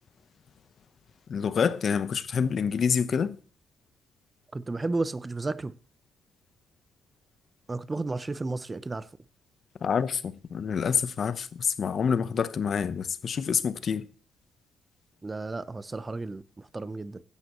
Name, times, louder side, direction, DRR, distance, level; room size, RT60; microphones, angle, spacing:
voice 1, 1.3-3.4 9.8-14.0, left 6 dB, 50° left, 0.9 m, -27 dB
voice 2, 4.5-5.7 7.7-9.1 15.2-17.2, right 3 dB, 25° right, 0.8 m, -33 dB
15.5 x 11.5 x 3.1 m
cardioid pair, 90°, 0 cm